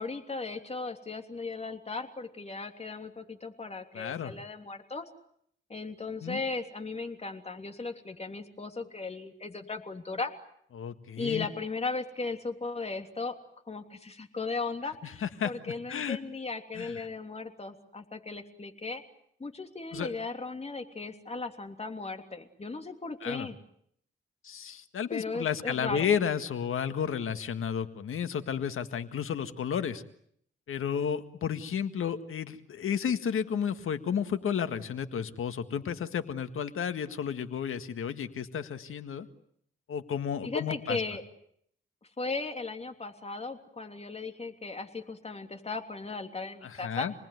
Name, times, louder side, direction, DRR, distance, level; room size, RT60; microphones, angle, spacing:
voice 1, 0.0-5.1 5.7-10.3 11.2-13.4 13.7-19.0 19.4-23.6 25.1-26.1 40.4-41.2 42.2-47.1, left 3 dB, 30° left, 5 dB, 3.2 m, -37 dB
voice 2, 3.9-4.3 6.2-6.4 10.7-11.5 15.0-16.2 16.8-17.0 19.9-20.1 23.2-23.5 24.4-30.0 30.7-39.3 39.9-41.0 46.6-47.1, left 7 dB, 80° left, 9 dB, 1.9 m, -32 dB
28.0 x 20.0 x 9.5 m, 0.70 s
cardioid pair, 85°, 21 cm